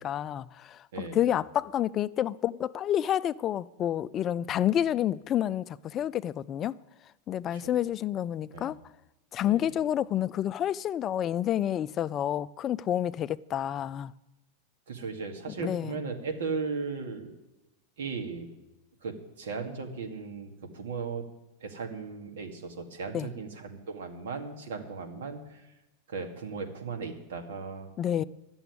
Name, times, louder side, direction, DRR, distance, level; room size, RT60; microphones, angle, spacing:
voice 1, 0.0-6.8 7.3-8.8 9.3-14.1 15.6-16.0 23.1-23.3 28.0-28.2, left 11 dB, 30° left, 0.3 m, -29 dB
voice 2, 0.9-1.3 7.5-7.7 8.5-8.8 9.4-9.7 14.9-17.4 18.0-18.5 19.0-21.2 21.6-25.7 26.1-27.9, right 4 dB, 85° right, 2.1 m, -37 dB
12.0 x 7.0 x 9.6 m
supercardioid pair, 140°, 0 cm